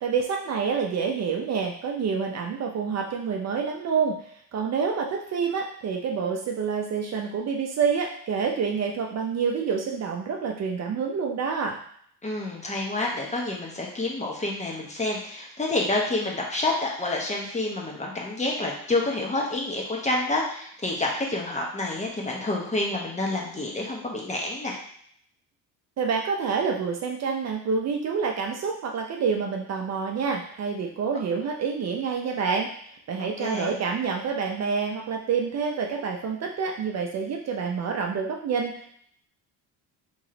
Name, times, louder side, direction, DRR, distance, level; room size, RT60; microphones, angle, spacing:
voice 1, 0.0-4.2 4.5-11.8 26.0-32.7 33.1-39.0, right 5 dB, 45° right, 2 dB, 0.6 m, -27 dB
voice 2, 12.2-24.8 33.2-33.8, left 2 dB, 20° left, -2 dB, 1.0 m, -28 dB
3.0 x 3.0 x 3.8 m, 0.64 s
cardioid pair, 105°, 37 cm